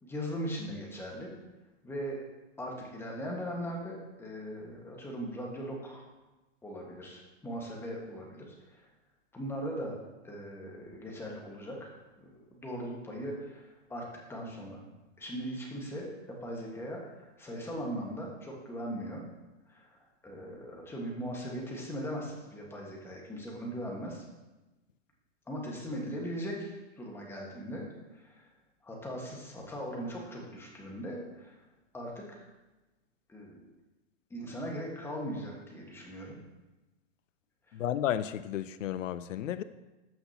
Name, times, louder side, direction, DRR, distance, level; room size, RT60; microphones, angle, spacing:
voice 1, 0.0-1.3 1.8-2.2 2.6-6.1 6.6-8.9 9.3-9.9 10.2-14.0 14.3-14.8 15.2-19.2 19.7-24.2 25.5-28.5 28.8-31.6 31.9-32.4 33.3-33.7 34.3-36.4 37.7-37.8, equal, 5° left, -2 dB, 1.5 m, -39 dB
voice 2, 37.7-39.6, left 11 dB, 90° left, 13 dB, 0.5 m, -32 dB
14.0 x 5.9 x 2.9 m, 1.1 s
hypercardioid pair, 145°, 37 cm